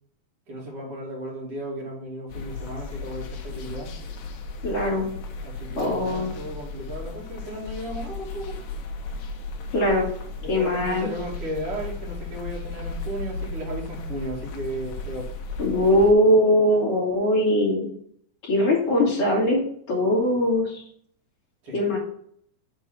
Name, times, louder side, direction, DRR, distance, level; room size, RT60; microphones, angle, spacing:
voice 1, 0.5-3.9 5.4-8.6 10.4-15.3 21.6-21.8, equal, 35° right, -4 dB, 2.9 m, -35 dB
sound 1, 2.3-16.1, left 3 dB, 75° left, 2.1 m, -35 dB
voice 2, 4.6-5.1 5.8-6.3 9.7-10.1 10.5-11.1 15.6-17.9 18.4-19.6 19.9-20.8 21.7-22.0, left 1 dB, 40° left, -3 dB, 2.8 m, -21 dB
6.9 x 4.5 x 5.8 m, 0.64 s
omnidirectional pair, 5.0 m